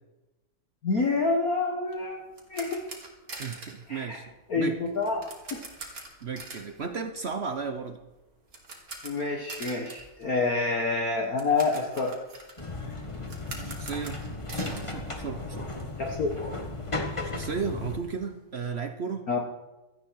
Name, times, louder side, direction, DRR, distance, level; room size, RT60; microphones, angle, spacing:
voice 1, 0.8-2.2 2.5-2.8 3.9-4.2 4.5-5.2 5.5-5.6 9.0-12.2 16.0-16.3 19.3-19.4, left 3 dB, 45° left, 2 dB, 1.6 m, -27 dB
sound 1, 1.9-15.9 16.1-16.3 16.7-16.8 17.0-18.6, right 3 dB, 40° right, 2.7 m, -45 dB
voice 2, 3.4-4.8 6.2-8.0 13.6-14.2 14.5-15.7 17.2-19.3, right 5 dB, 65° right, 8 dB, 0.6 m, -34 dB
sound 2, 12.6-18.0, left 3 dB, 15° left, 1.5 m, -35 dB
16.5 x 13.5 x 4.7 m, 1.0 s
omnidirectional pair, 2.4 m